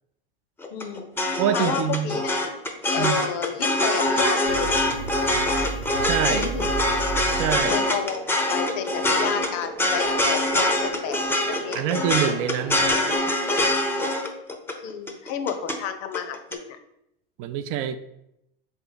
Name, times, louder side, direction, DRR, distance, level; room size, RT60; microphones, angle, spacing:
sound 1, 0.6-15.8 16.1-16.6, left 1 dB, 10° left, 0.5 m, -24 dB
voice 1, 0.7-2.4 2.9-4.9 6.3-6.7 7.7-11.2 11.6-11.8 13.8-14.0 14.8-16.8, left 8 dB, 55° left, 9 dB, 0.6 m, -31 dB
voice 2, 1.4-2.1 3.0-3.2 6.0-6.5 7.3-7.8 11.7-12.9 17.4-18.0, right 10 dB, 50° right, 10 dB, 0.4 m, -25 dB
sound 2, 2.5-13.2, right 5 dB, 65° right, 1.0 m, -40 dB
sound 3, 4.5-8.2, right 4 dB, 90° right, 0.8 m, -33 dB
3.6 x 3.4 x 3.9 m, 0.81 s
hypercardioid pair, 95°, 29 cm